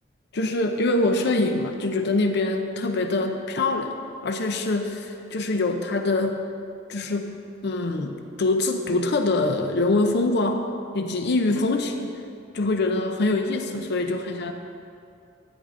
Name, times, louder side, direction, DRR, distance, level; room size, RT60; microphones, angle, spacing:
voice 1, 0.3-3.9 4.2-6.5 6.9-10.6 10.9-12.1 12.5-14.5, left 2 dB, 60° left, 5 dB, 0.6 m, -24 dB
13.5 x 9.7 x 3.7 m, 2.6 s
head